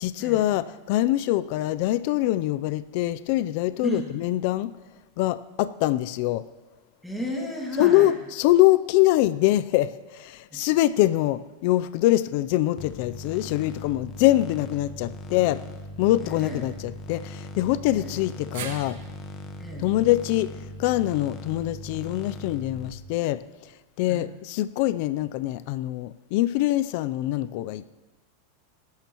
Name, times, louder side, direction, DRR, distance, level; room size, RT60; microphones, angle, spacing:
voice 1, 0.0-4.7 5.2-6.4 7.8-15.6 16.0-19.0 19.8-20.5 20.8-23.4 24.0-27.9, left 15 dB, 55° left, 14 dB, 0.4 m, -24 dB
voice 2, 7.0-8.1 10.5-10.6 16.2-16.6 17.9-18.1 19.6-19.9 24.1-24.3, right 1 dB, ahead, -3 dB, 2.1 m, -33 dB
sound 1, 12.8-22.9, left 2 dB, 30° left, 1.2 m, -39 dB
sound 2, 18.5-22.8 23.1-23.2 24.4-24.5, right 8 dB, 75° right, 1.6 m, -44 dB
21.0 x 11.5 x 3.0 m, 1.2 s
supercardioid pair, 140°, 0 cm